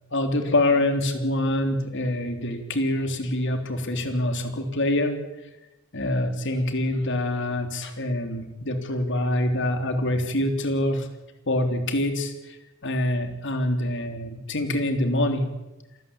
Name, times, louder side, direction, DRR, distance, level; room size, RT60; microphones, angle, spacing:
voice 1, 0.1-5.1 5.9-11.1 11.5-12.6 12.8-15.4, left 1 dB, 60° left, 6 dB, 3.4 m, -25 dB
28.0 x 14.0 x 8.9 m, 1.0 s
head